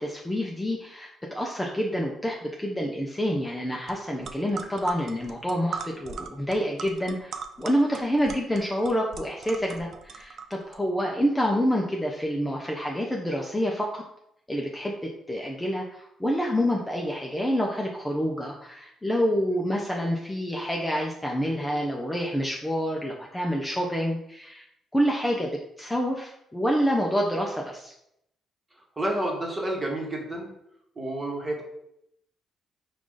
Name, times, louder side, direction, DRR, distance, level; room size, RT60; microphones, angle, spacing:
voice 1, 0.0-14.0 14.5-24.6 24.9-25.5 25.8-27.9, equal, 10° left, -1 dB, 0.5 m, -27 dB
sound 1, 3.9-4.0 4.2-10.8, right 5 dB, 60° right, 0.4 m, -39 dB
voice 2, 29.0-30.5 30.9-31.6, right 1 dB, 20° right, -1 dB, 1.3 m, -29 dB
4.7 x 2.5 x 3.7 m, 0.78 s
cardioid pair, 90°, 0 cm